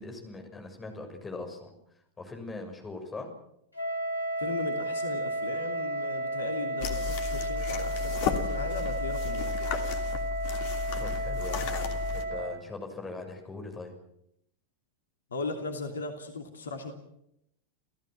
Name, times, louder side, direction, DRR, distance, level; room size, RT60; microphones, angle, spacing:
voice 1, 0.0-1.7 2.2-3.3 10.9-13.9, left 3 dB, 15° left, 4 dB, 6.4 m, -41 dB
Wind instrument woodwind instrument, 3.7-12.6, right 2 dB, 85° left, 2.8 m, -33 dB
voice 2, 4.4-9.6 15.3-16.9, left 3 dB, 70° left, 5 dB, 2.9 m, -37 dB
sound 1, 6.8-12.2, left 7 dB, 45° left, 2.9 m, -33 dB
30.0 x 16.0 x 7.6 m, 0.80 s
figure-of-eight pair, 90°, 0 cm